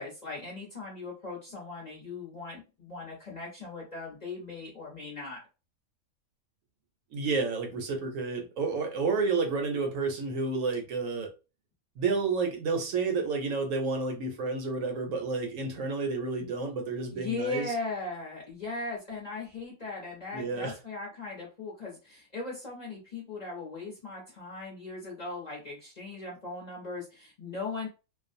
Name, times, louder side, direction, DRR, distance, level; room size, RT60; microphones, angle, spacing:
voice 1, 0.0-5.4 17.1-27.9, left 3 dB, 40° left, 0.7 m, -38 dB
voice 2, 7.1-11.3 12.0-17.7 20.3-20.8, right 4 dB, 70° right, 0.9 m, -30 dB
2.5 x 2.2 x 2.5 m
omnidirectional pair, 1.5 m